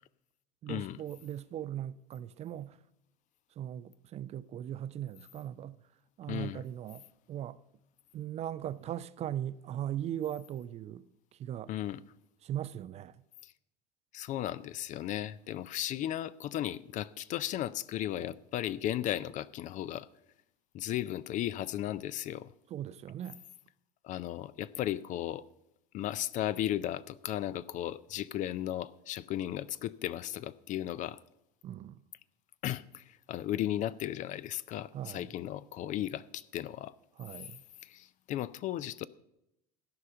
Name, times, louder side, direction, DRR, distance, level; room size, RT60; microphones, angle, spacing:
voice 1, 0.6-2.8 3.6-5.8 6.2-7.6 8.1-11.0 11.4-11.7 12.4-13.2 22.7-23.4 31.6-32.0 34.9-35.3 37.2-37.6, right 11 dB, 30° right, 0.4 m, -39 dB
voice 2, 6.3-6.6 11.7-12.0 13.4-13.5 14.1-20.1 20.7-22.5 24.0-25.5 25.9-31.2 32.6-36.9 37.8-39.1, left 12 dB, 40° left, 0.4 m, -35 dB
13.0 x 5.5 x 7.8 m
hypercardioid pair, 75°, 21 cm